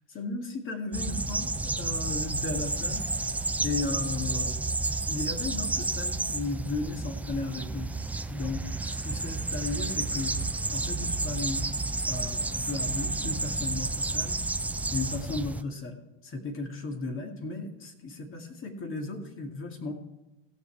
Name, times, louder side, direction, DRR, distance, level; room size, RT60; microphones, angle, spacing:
voice 1, 0.1-3.0 3.6-4.6 5.1-7.9 8.3-10.4 10.7-11.6 12.0-14.4 14.9-19.9, left 3 dB, 35° left, 3 dB, 2.3 m, -35 dB
sound 1, 0.9-15.6, right 3 dB, 5° right, 0.3 m, -31 dB
16.5 x 7.1 x 4.7 m, 0.98 s
supercardioid pair, 105°, 35 cm